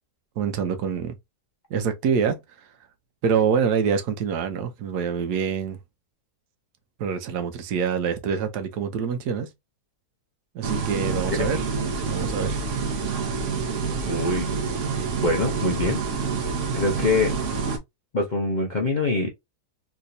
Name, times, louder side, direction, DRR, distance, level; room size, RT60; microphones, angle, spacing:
voice 1, 0.4-1.2 1.7-2.4 3.2-5.8 7.0-9.5 10.5-11.6 12.1-12.6, right 6 dB, 80° right, 1.2 m, -25 dB
sound 1, 10.6-17.8, right 5 dB, 55° right, 1.0 m, -27 dB
voice 2, 14.1-14.5 15.2-16.0 16.7-17.3 18.1-19.3, left 3 dB, 55° left, 0.5 m, -24 dB
3.3 x 2.9 x 2.6 m
omnidirectional pair, 1.8 m